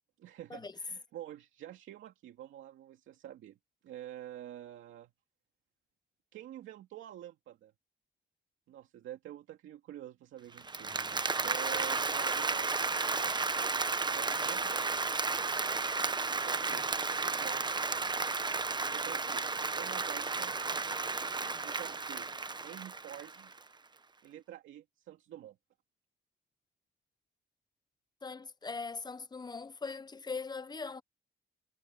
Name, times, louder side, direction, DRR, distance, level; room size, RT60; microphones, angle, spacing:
voice 1, 0.2-3.6 3.8-5.1 6.3-7.7 8.7-13.3 14.1-15.0 16.3-16.8 17.2-17.8 18.9-19.5 19.7-20.5 21.6-22.3 22.6-23.5 24.2-25.6, right 12 dB, 80° right, 2.4 m, -48 dB
Applause, 10.6-23.6, right 4 dB, 20° right, 1.0 m, -33 dB
voice 2, 28.2-31.0, left 4 dB, 20° left, 0.8 m, -40 dB
cardioid pair, 90°, 20 cm